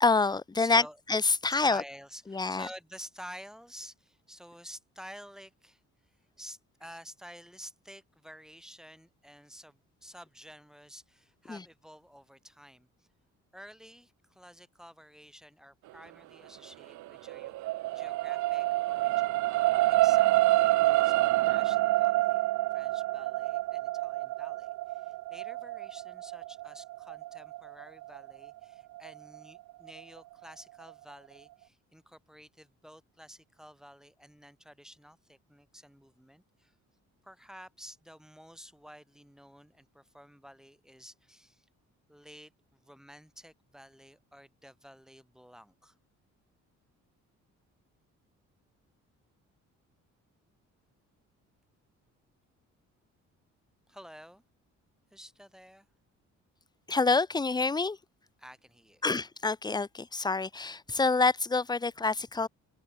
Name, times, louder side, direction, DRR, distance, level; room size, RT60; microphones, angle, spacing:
voice 1, 0.0-0.8 1.1-1.8 2.3-2.7 11.5-11.6 56.9-58.0 59.0-62.5, left 3 dB, 15° left, 0.6 m, -27 dB
voice 2, 0.6-1.0 1.6-13.1 13.5-17.6 17.9-36.7 37.2-41.7 42.1-46.0 53.9-54.4 55.1-55.9 58.4-59.0, equal, ahead, 2.9 m, -51 dB
sound 1, 16.8-29.4 29.9-30.0, right 17 dB, 70° right, 0.5 m, -27 dB
open air
cardioid pair, 90°, 30 cm